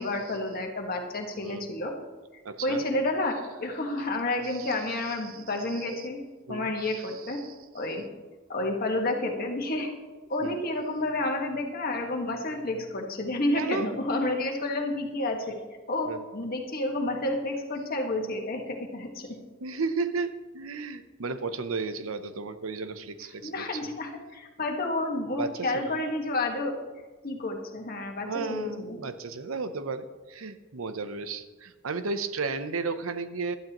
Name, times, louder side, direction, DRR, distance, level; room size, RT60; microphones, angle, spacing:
voice 1, 0.0-1.9 2.3-6.2 6.5-7.4 7.7-8.0 8.5-9.9 10.3-15.6 15.9-19.3 23.4-26.8 27.2-29.0, left 2 dB, 45° left, 2 dB, 1.7 m, -30 dB
voice 2, 1.4-1.7 2.4-2.9 4.4-5.4 5.7-5.9 6.5-7.5 10.4-10.6 13.5-13.9 16.1-16.2 19.6-24.0 25.4-26.0 28.3-33.6, right 4 dB, 80° right, 11 dB, 0.8 m, -34 dB
16.5 x 12.0 x 3.0 m, 1.3 s
head